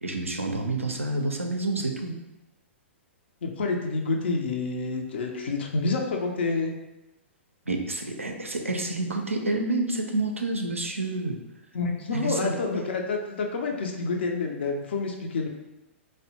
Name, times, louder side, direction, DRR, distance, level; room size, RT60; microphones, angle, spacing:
voice 1, 0.0-2.2 7.7-11.4 12.1-12.6, right 2 dB, 85° right, 3 dB, 0.4 m, -28 dB
voice 2, 3.4-6.7 11.7-15.5, left 3 dB, 55° left, 2 dB, 0.4 m, -28 dB
2.6 x 2.1 x 2.8 m, 0.97 s
figure-of-eight pair, 110°, 7 cm